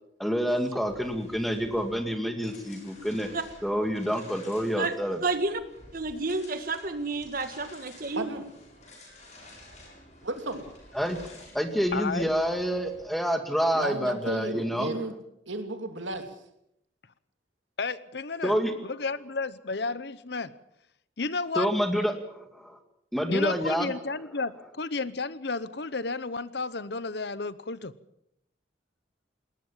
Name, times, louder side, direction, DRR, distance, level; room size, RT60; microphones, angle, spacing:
voice 1, 0.2-3.3 3.6-5.2 10.9-14.9 18.4-18.7 21.6-22.8 23.1-23.9, equal, ahead, 6 dB, 2.1 m, -28 dB
sound 1, 0.8-13.0, left 1 dB, 40° left, 7.3 m, -51 dB
voice 2, 5.2-5.6 5.9-8.4, right 3 dB, 50° right, 9 dB, 2.0 m, -30 dB
voice 3, 8.1-8.5 10.2-10.6 13.7-15.1 15.5-16.3, right 2 dB, 85° right, 6 dB, 3.1 m, -33 dB
voice 4, 11.9-12.3 17.8-18.6 18.8-20.5 21.2-21.7 23.3-27.9, left 4 dB, 65° left, 16 dB, 0.9 m, -32 dB
21.0 x 19.0 x 7.3 m, 0.77 s
head